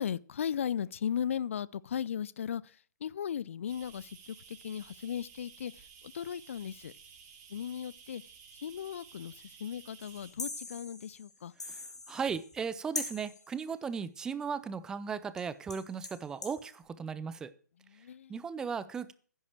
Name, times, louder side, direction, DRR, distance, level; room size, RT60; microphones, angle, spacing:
voice 1, 0.0-6.9 7.5-8.2 8.6-11.5 17.9-18.3, left 8 dB, 45° left, 0.5 m, -37 dB
sound 1, 3.7-10.3, right 6 dB, 25° right, 2.9 m, -54 dB
sound 2, 10.0-12.7 13.0-13.5 15.4-15.5 15.7-16.6, left 3 dB, 70° left, 2.9 m, -42 dB
voice 2, 11.6-17.5 18.0-19.1, right 6 dB, 5° right, 0.5 m, -37 dB
13.5 x 10.0 x 4.5 m
figure-of-eight pair, 135°, 10 cm